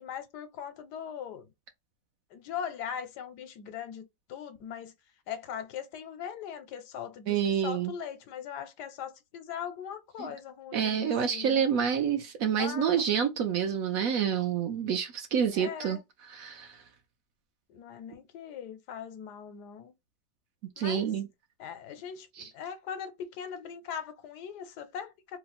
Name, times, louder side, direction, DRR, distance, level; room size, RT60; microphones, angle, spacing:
voice 1, 0.0-1.5 2.3-4.9 5.3-11.7 12.6-13.0 15.5-16.0 17.7-19.9 20.8-21.1 21.6-25.4, left 8 dB, 80° left, 1.3 m, -40 dB
voice 2, 7.3-7.9 10.7-16.0 16.3-16.8 20.8-21.3, right 8 dB, 70° right, 0.9 m, -28 dB
3.0 x 2.0 x 4.1 m
omnidirectional pair, 1.8 m